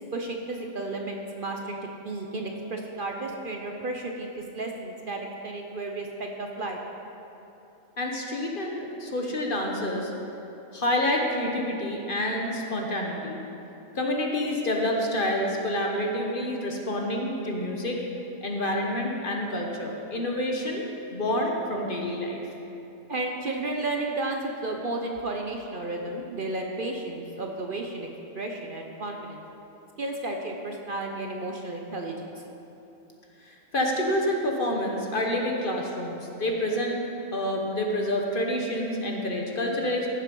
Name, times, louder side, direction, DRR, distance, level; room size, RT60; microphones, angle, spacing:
voice 1, 0.1-1.8 2.0-6.8 23.1-28.1 28.3-29.4 30.0-32.3, right 2 dB, 45° right, 1 dB, 0.9 m, -33 dB
voice 2, 8.0-10.1 10.7-13.4 13.9-18.0 18.4-20.8 21.1-22.4 33.5-40.1, left 1 dB, 45° left, 1 dB, 1.3 m, -28 dB
15.0 x 7.2 x 5.4 m, 2.9 s
omnidirectional pair, 1.3 m